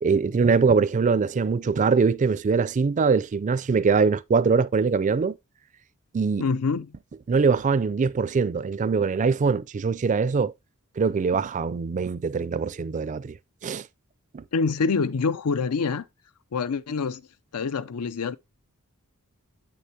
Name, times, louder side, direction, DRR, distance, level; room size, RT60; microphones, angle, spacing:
voice 1, 0.0-5.4 6.1-6.4 7.3-10.5 11.0-13.4 13.6-13.9 14.3-14.4, right 5 dB, 35° right, 0.4 m, -22 dB
voice 2, 6.4-6.9 14.5-16.0 16.5-17.2 17.5-18.4, left 4 dB, 85° left, 0.5 m, -26 dB
8.1 x 6.4 x 2.7 m
head